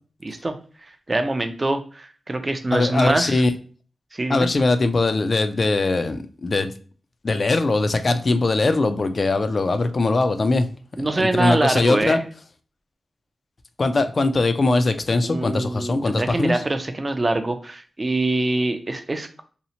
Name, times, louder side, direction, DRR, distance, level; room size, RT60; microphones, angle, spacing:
voice 1, 0.2-0.5 0.9-3.4 4.1-4.5 11.0-12.2 15.2-19.4, right 2 dB, 30° right, 7 dB, 0.4 m, -24 dB
voice 2, 2.7-3.5 4.3-6.7 7.2-10.7 11.1-12.2 13.8-16.6, left 3 dB, 45° left, 9 dB, 0.3 m, -21 dB
2.8 x 2.0 x 2.7 m, 0.39 s
wide cardioid pair, 85°, 0 cm